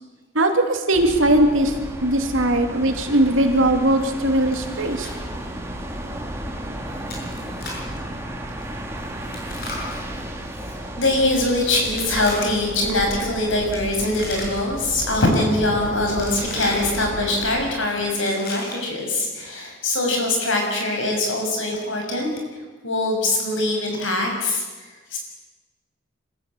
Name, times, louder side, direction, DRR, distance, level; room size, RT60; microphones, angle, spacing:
voice 1, 0.3-1.7 2.0-5.1, right 1 dB, 75° right, 4 dB, 2.9 m, -19 dB
sound 1, 0.9-17.7, right 1 dB, 10° right, 2.3 m, -33 dB
Chewing mastication, 4.5-5.2 5.4-5.5 6.0-6.2 7.0-7.9 9.2-10.8 11.8-12.7 13.6-14.8 15.1-15.5 16.1-17.0 18.1-19.0, left 2 dB, 45° left, 6.8 m, -36 dB
voice 2, 7.7-8.1 11.0-22.3 22.8-24.6 25.1-25.2, left 2 dB, 70° left, 2 dB, 6.3 m, -23 dB
26.0 x 14.5 x 8.7 m, 1.3 s
head